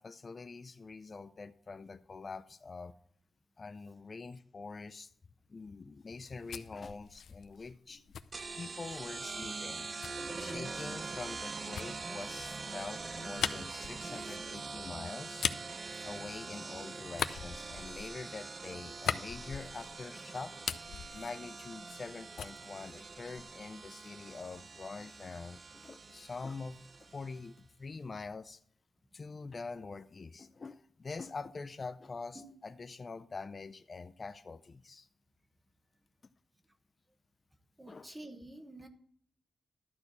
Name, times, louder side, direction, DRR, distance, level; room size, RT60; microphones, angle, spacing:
voice 1, 0.0-2.9 3.6-5.1 5.5-8.0 8.6-9.9 10.3-15.5 16.0-20.6 21.1-26.8 27.1-28.6 29.1-35.1 37.9-38.1, left 4 dB, 35° left, 0.4 m, -45 dB
sound 1, 6.1-9.1 10.0-16.7 17.1-20.1 20.4-22.1 22.4-23.7, left 8 dB, 90° left, 0.5 m, -41 dB
sound 2, 8.3-27.5, right 4 dB, 35° right, 0.5 m, -44 dB
voice 2, 37.8-38.9, right 1 dB, 15° right, 1.0 m, -49 dB
12.0 x 4.4 x 8.2 m
wide cardioid pair, 140°, 0 cm